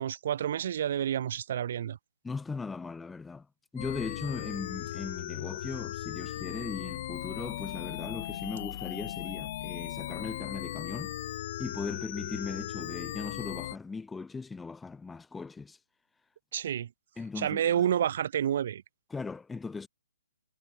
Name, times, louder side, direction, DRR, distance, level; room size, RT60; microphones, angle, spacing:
voice 1, 0.0-2.0 16.5-16.9 17.4-18.8, right 9 dB, 55° right, 0.5 m, -29 dB
voice 2, 2.2-3.5 3.7-11.2 11.6-15.8 17.2-17.8 19.1-19.9, left 4 dB, 5° left, 0.8 m, -38 dB
sound 1, 3.8-13.8, left 13 dB, 45° left, 2.0 m, -37 dB
hypercardioid pair, 140°, 0 cm